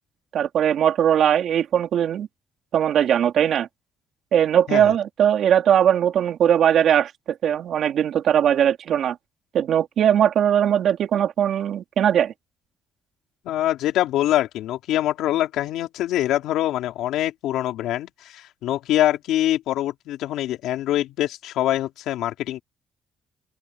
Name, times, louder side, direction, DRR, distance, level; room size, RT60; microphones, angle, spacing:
voice 1, 0.3-2.3 2.7-3.7 4.3-9.2 9.5-12.3, right 9 dB, 70° right, 3.0 m, -20 dB
voice 2, 13.4-22.6, left 13 dB, 90° left, 3.5 m, -24 dB
open air
cardioid pair, 90°, 0 cm